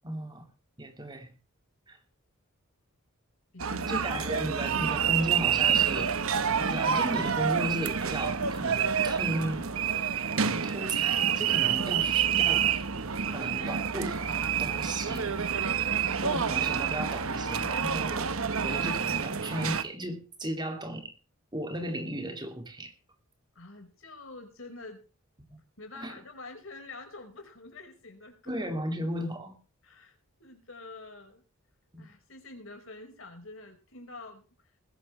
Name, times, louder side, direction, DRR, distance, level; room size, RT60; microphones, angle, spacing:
voice 1, 0.0-0.5 0.8-1.3 1.9-2.0 3.9-6.2 6.6-9.6 10.4-12.7 13.3-15.3 16.2-18.3 18.6-21.1 21.5-22.9 25.5-25.6 26.0-26.1 28.5-29.6 31.9-32.1, right 1 dB, 20° right, 2.5 m, -35 dB
voice 2, 3.5-4.0 23.5-25.0 25.8-28.6 29.8-31.4 32.0-34.5, left 3 dB, 60° left, 4.9 m, -47 dB
sound 1, 3.6-19.8, right 7 dB, 70° right, 1.1 m, -28 dB
20.5 x 11.0 x 3.2 m
head